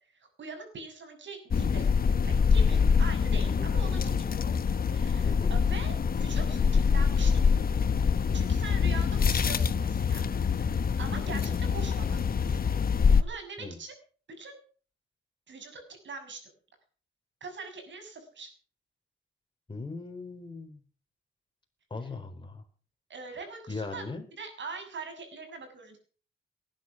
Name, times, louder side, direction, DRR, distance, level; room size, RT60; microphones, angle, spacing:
voice 1, 0.4-1.9 2.3-4.4 4.9-7.4 8.3-12.2 12.5-12.6 13.2-13.9 14.4-14.6 15.5-16.4 17.4-18.5 23.1-24.1 24.4-26.0, right 4 dB, 60° right, 6 dB, 6.8 m, -42 dB
sound 1, 1.5-13.2, left 6 dB, 45° left, 1.0 m, -25 dB
voice 2, 19.7-20.8 21.9-22.6 23.7-24.3, left 3 dB, 25° left, 4 dB, 4.3 m, -38 dB
19.5 x 11.0 x 6.0 m, 0.41 s
cardioid pair, 115°, 21 cm